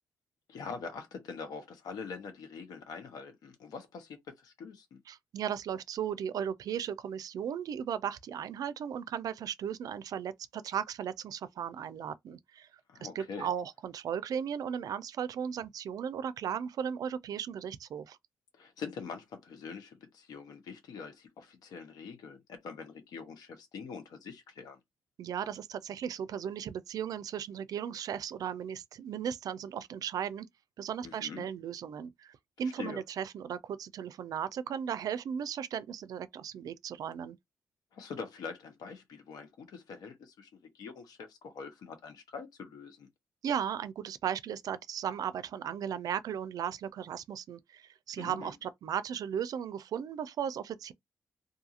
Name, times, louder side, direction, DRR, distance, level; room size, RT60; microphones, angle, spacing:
voice 1, 0.5-5.0 12.9-13.5 18.6-24.8 31.0-31.4 32.8-33.0 37.9-40.5 40.7-43.1 48.2-48.5, left 5 dB, 80° left, 0.9 m, -44 dB
voice 2, 5.1-12.7 13.0-18.2 25.2-30.5 30.8-37.4 43.4-50.9, right 8 dB, 70° right, 0.4 m, -36 dB
2.5 x 2.4 x 2.8 m
cardioid pair, 85°, 7 cm